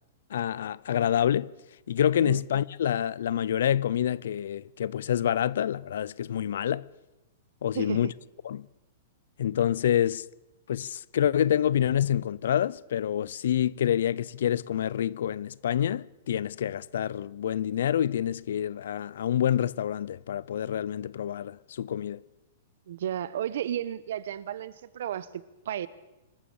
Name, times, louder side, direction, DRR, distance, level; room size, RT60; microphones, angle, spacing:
voice 1, 0.3-1.5 1.9-6.8 7.6-8.1 8.4-8.7 9.4-10.2 10.7-22.2, left 10 dB, 70° left, 0.7 m, -27 dB
voice 2, 22.9-25.9, right 10 dB, 60° right, 1.2 m, -33 dB
26.0 x 14.0 x 7.3 m
hypercardioid pair, 170°, 0 cm